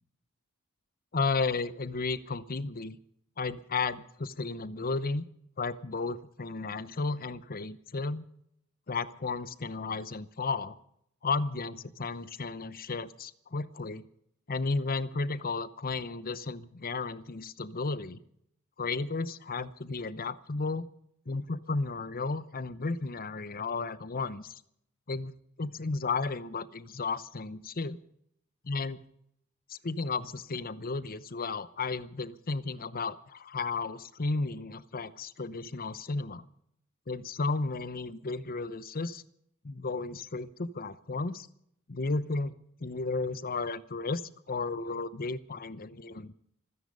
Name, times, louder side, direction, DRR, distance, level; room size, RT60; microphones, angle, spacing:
voice 1, 1.1-3.0 3.4-5.2 5.6-8.2 8.9-10.7 11.2-14.1 14.5-18.2 18.8-20.9 21.3-24.6 25.1-25.3 25.6-28.0 28.6-29.0 29.7-36.5 37.1-39.2 39.6-41.5 41.9-44.2 44.5-46.3, left 3 dB, 45° left, 15 dB, 0.9 m, -33 dB
26.5 x 9.9 x 5.4 m, 0.72 s
head